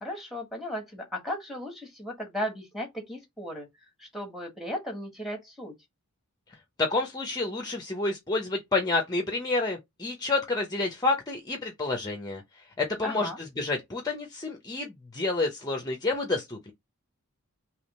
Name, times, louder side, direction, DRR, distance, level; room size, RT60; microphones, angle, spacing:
voice 1, 0.0-3.7 4.0-5.7 13.0-13.4, equal, ahead, 1.5 m, -36 dB
voice 2, 6.8-12.4 12.8-16.7, left 3 dB, 20° left, 0.7 m, -29 dB
3.5 x 3.0 x 4.1 m
head